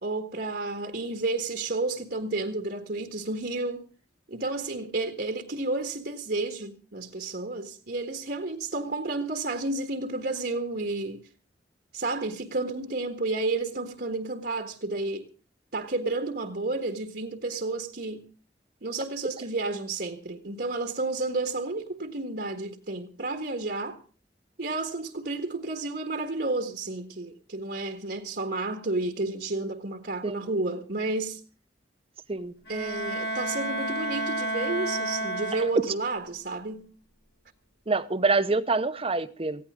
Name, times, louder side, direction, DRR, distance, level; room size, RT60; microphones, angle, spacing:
voice 1, 0.0-3.9 4.3-11.2 11.9-15.2 15.7-18.3 18.8-24.0 24.6-31.4 32.7-36.8, right 2 dB, 65° right, 1.7 m, -31 dB
Bowed string instrument, 32.7-36.2, right 2 dB, 65° left, 3.2 m, -31 dB
voice 2, 37.9-39.7, right 3 dB, 35° right, 0.9 m, -26 dB
19.0 x 15.5 x 3.7 m
head